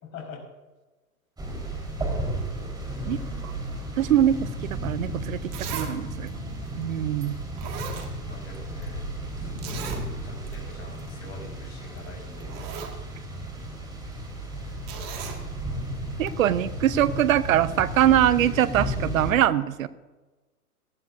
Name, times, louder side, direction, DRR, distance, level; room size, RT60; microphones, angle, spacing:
voice 1, 0.0-0.4 1.5-1.6 2.9-3.4 8.2-9.0 9.4-9.9 10.2-12.7 14.9-15.1, left 4 dB, 30° left, 0 dB, 4.9 m, -44 dB
sound 1, 1.4-19.3, right 1 dB, 10° right, 4.2 m, -34 dB
voice 2, 4.0-6.3 6.8-7.4 16.2-19.9, right 11 dB, 60° right, 16 dB, 0.9 m, -23 dB
Zipper (clothing), 5.5-5.9 6.3-6.4 7.2-7.3 7.6-8.6 8.8-8.9 9.6-10.0 10.5-10.6 10.9-11.1 12.0-12.1 12.4-13.0 14.9-15.4 16.3-16.4, right 7 dB, 35° right, 2.0 m, -37 dB
18.5 x 13.5 x 2.6 m, 1.2 s
hypercardioid pair, 115°, 45 cm